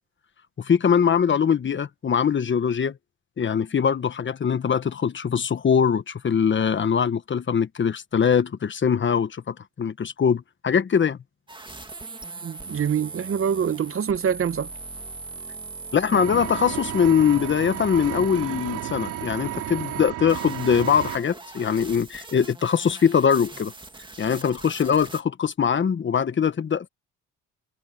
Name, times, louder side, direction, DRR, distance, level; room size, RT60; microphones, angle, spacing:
voice 1, 0.6-3.0 3.4-11.2 15.9-23.7 24.2-26.9, left 7 dB, 40° left, 1.3 m, -22 dB
sound 1, 11.5-25.2, right 3 dB, 15° right, 2.1 m, -40 dB
voice 2, 12.4-14.7, right 8 dB, 45° right, 1.1 m, -25 dB
Engine, 16.1-21.2, right 13 dB, 80° right, 4.2 m, -33 dB
cardioid pair, 90°, 30 cm